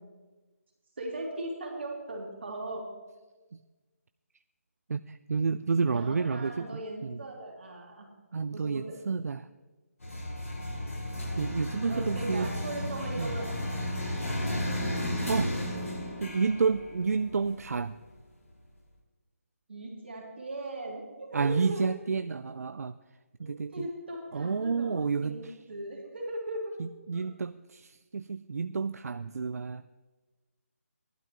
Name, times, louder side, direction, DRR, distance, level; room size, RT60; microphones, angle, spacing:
voice 1, 1.0-2.8 5.9-8.1 8.5-8.9 11.9-13.5 19.7-21.8 23.4-26.7 27.1-27.2, right 1 dB, 45° right, -1 dB, 2.8 m, -38 dB
voice 2, 4.9-7.2 8.3-9.5 11.4-12.5 13.2-13.3 15.3-15.5 16.2-18.0 21.3-22.9 23.4-23.9 24.3-25.6 26.8-29.8, right 5 dB, 80° right, 12 dB, 0.4 m, -30 dB
sound 1, 10.0-18.0, left 1 dB, 70° left, 4.8 m, -34 dB
16.0 x 12.0 x 3.1 m, 1.2 s
hypercardioid pair, 180°, 8 cm